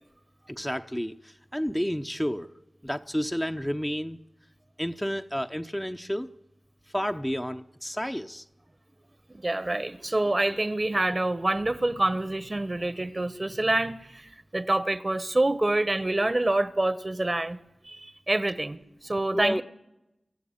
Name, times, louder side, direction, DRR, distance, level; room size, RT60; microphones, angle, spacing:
voice 1, 0.5-2.5 2.8-4.2 4.8-6.3 6.9-8.4 19.3-19.6, equal, 5° left, 0.7 m, -30 dB
voice 2, 9.3-17.6 17.8-19.6, right 2 dB, 35° right, 1.0 m, -27 dB
24.5 x 14.5 x 8.9 m
wide cardioid pair, 60°, 0 cm